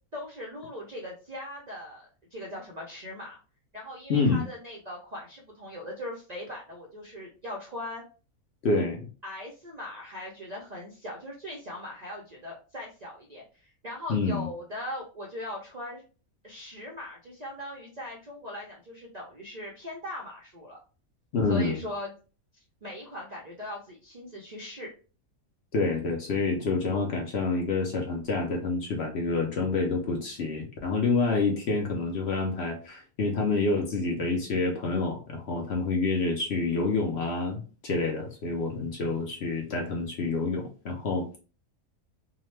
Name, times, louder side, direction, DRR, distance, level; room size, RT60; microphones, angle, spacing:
voice 1, 0.1-3.4 3.7-8.0 9.2-16.0 16.4-20.8 21.5-22.1 22.8-24.9, left 1 dB, 55° right, -2 dB, 0.4 m, -40 dB
voice 2, 4.1-4.4 8.6-9.1 14.1-14.5 21.3-21.8 25.7-41.4, left 3 dB, 60° left, 1 dB, 0.8 m, -28 dB
2.8 x 2.1 x 3.1 m, 0.36 s
omnidirectional pair, 1.5 m